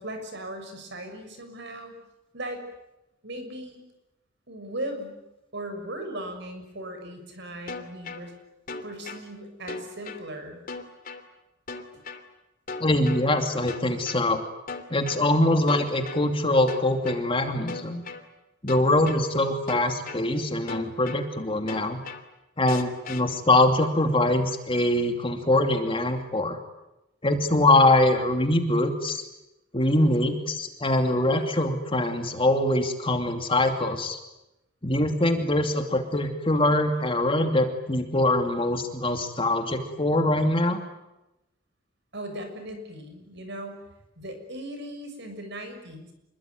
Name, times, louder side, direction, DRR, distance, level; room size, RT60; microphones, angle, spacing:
voice 1, 0.0-2.0 2.3-2.6 3.2-3.8 4.5-5.2 5.5-8.3 8.8-10.6 11.9-12.0 42.1-43.8 44.2-46.1, right 1 dB, 60° right, 7 dB, 6.6 m, -38 dB
sound 1, 7.7-8.2 8.7-9.2 9.7-10.2 10.7-11.2 11.7-12.2 12.7-13.2 13.7-14.2 14.7-15.2 15.7-16.2 16.7-17.2 17.7-18.2 18.7-19.2 19.7-20.2 20.7-21.2 21.7-22.2 22.7-23.2, left 4 dB, 45° left, 3.0 m, -36 dB
voice 2, 12.8-14.4 14.9-18.0 18.6-22.0 22.6-26.6 27.2-29.2 29.7-34.2 34.8-40.8, left 1 dB, 25° left, 5 dB, 2.7 m, -23 dB
27.5 x 22.5 x 9.4 m, 0.94 s
head